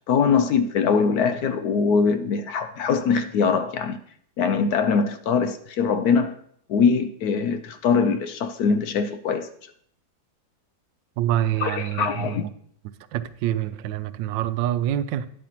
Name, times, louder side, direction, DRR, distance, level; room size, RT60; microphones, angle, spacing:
voice 1, 0.1-4.0 4.4-6.4 6.7-9.5 11.6-12.4, left 5 dB, 70° left, 1.0 m, -22 dB
voice 2, 11.2-12.4 13.1-15.3, right 12 dB, 85° right, 1.3 m, -26 dB
12.0 x 10.0 x 2.9 m
omnidirectional pair, 1.9 m